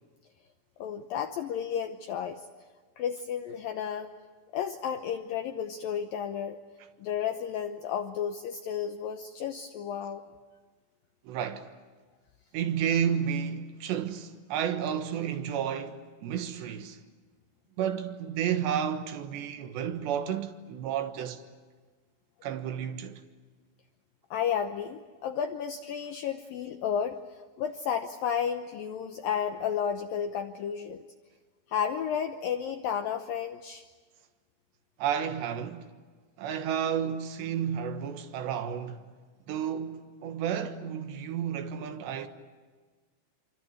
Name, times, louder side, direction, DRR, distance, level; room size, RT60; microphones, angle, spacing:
voice 1, 0.8-2.5 3.0-4.1 4.5-6.6 7.0-10.2 24.3-31.0 31.7-33.9, left 8 dB, 75° left, 2.2 m, -32 dB
voice 2, 11.3-11.7 12.5-17.0 17.8-21.4 22.4-23.2 35.0-35.9 36.4-39.0 39.5-42.3, right 8 dB, 80° right, 3.5 m, -31 dB
28.5 x 24.5 x 8.0 m
omnidirectional pair, 5.0 m